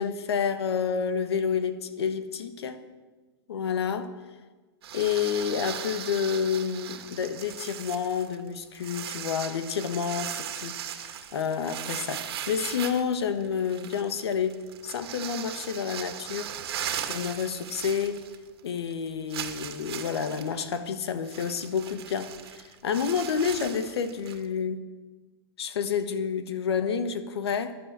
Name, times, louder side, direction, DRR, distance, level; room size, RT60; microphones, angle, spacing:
voice 1, 0.0-2.8 3.5-4.1 4.9-16.6 17.1-18.2 18.6-24.9 25.6-27.7, left 7 dB, 80° left, 10 dB, 1.4 m, -29 dB
sound 1, 4.8-18.6 18.9-19.0 19.3-24.5, right 9 dB, 70° right, 1.8 m, -38 dB
12.5 x 11.0 x 8.1 m, 1.3 s
hypercardioid pair, 125°, 13 cm